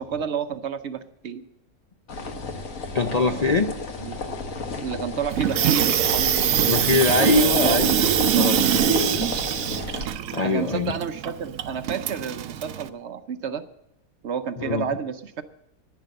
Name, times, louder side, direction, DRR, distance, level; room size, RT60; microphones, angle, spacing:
voice 1, 0.0-1.4 3.0-3.5 4.0-4.2 4.6-6.8 7.3-7.9 10.4-13.6 14.2-15.4, right 7 dB, 60° right, 10 dB, 0.9 m, -30 dB
sound 1, 2.1-10.1, left 3 dB, 75° left, 1.7 m, -32 dB
voice 2, 2.9-3.7 6.6-9.2 10.3-10.9 14.6-14.9, left 4 dB, 45° left, 5 dB, 0.5 m, -23 dB
Water tap faucet / Sink (filling or washing), 5.3-12.9, right 10 dB, 80° right, 1.1 m, -23 dB
10.5 x 10.5 x 7.7 m, 0.85 s
omnidirectional pair, 1.5 m